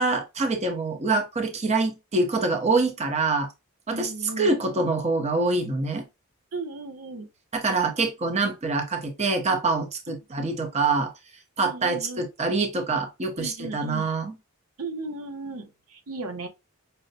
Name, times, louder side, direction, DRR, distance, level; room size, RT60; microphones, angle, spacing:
voice 1, 0.0-3.5 3.9-4.1 4.4-6.0 7.5-11.1 11.6-14.3, right 3 dB, 30° right, 0.7 m, -25 dB
voice 2, 3.9-4.9 6.5-7.3 10.1-10.2 11.6-12.2 13.4-14.1 14.8-16.5, right 2 dB, 85° right, 0.8 m, -36 dB
5.5 x 2.1 x 2.6 m
head